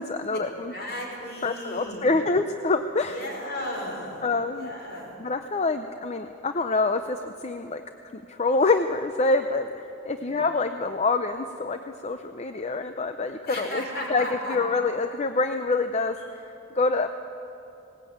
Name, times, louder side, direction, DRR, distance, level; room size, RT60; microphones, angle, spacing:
voice 1, 0.0-0.7 1.4-3.2 4.2-4.7 5.2-7.8 8.1-13.8 14.1-17.1, left 3 dB, 35° left, 8 dB, 0.5 m, -26 dB
voice 2, 0.7-2.2 3.1-5.2 10.2-10.3 13.5-14.6, left 1 dB, 55° left, -1 dB, 5.3 m, -35 dB
19.5 x 18.5 x 8.6 m, 2.9 s
head